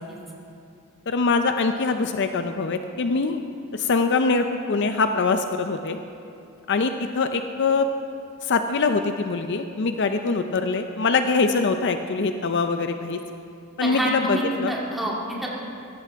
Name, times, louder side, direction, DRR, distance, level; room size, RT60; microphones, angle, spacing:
voice 1, 1.1-3.4 3.7-6.0 6.7-7.9 8.4-13.2 13.8-14.7, left 4 dB, 55° left, 7 dB, 0.5 m, -23 dB
voice 2, 13.8-15.5, right 1 dB, ahead, -5 dB, 2.1 m, -27 dB
16.5 x 14.0 x 3.5 m, 2.7 s
head